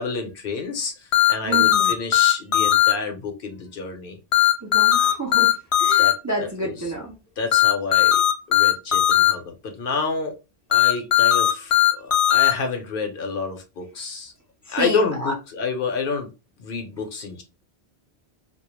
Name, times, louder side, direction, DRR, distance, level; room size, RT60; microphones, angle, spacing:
voice 1, 0.0-4.2 6.0-6.8 7.4-8.2 8.5-10.3 10.7-14.3 14.7-16.3 16.6-17.4, left 4 dB, 65° left, 0.8 m, -29 dB
sound 1, 1.1-2.9 4.3-6.1 7.5-9.3 10.7-12.5, left 12 dB, 45° left, 0.4 m, -17 dB
voice 2, 1.4-1.9 4.6-5.5 5.8-7.2 14.7-15.3, right 1 dB, 25° right, 0.4 m, -29 dB
2.2 x 2.1 x 3.0 m
omnidirectional pair, 1.1 m